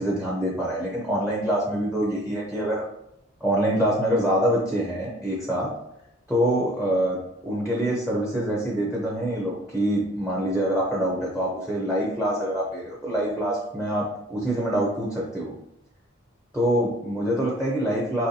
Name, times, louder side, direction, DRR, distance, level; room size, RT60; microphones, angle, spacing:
voice 1, 0.0-2.8 3.4-5.7 6.3-15.5 16.5-18.3, right 1 dB, 5° right, -3 dB, 0.7 m, -25 dB
5.5 x 3.1 x 2.7 m, 0.82 s
head